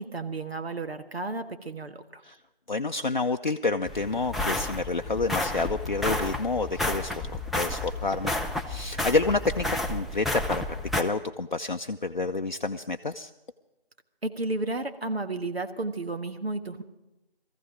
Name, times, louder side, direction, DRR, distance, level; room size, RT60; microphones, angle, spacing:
voice 1, 0.0-2.2 14.2-16.8, right 2 dB, 85° right, 7 dB, 1.7 m, -32 dB
voice 2, 2.7-8.4 8.7-10.6 10.9-13.3, left 3 dB, 50° left, 5 dB, 0.5 m, -29 dB
sound 1, 3.9-11.0, left 1 dB, ahead, 0.4 m, -31 dB
18.0 x 15.0 x 5.0 m, 0.99 s
figure-of-eight pair, 175°, 30 cm